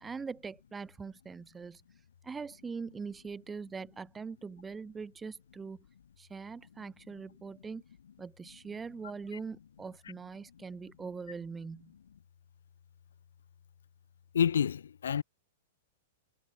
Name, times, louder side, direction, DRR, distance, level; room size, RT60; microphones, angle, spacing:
voice 1, 0.0-1.8 2.2-5.8 6.2-7.8 8.2-11.9, right 5 dB, 15° right, 1.6 m, -42 dB
voice 2, 14.3-15.2, left 8 dB, 75° left, 1.1 m, -28 dB
hypercardioid pair, 105°, 0 cm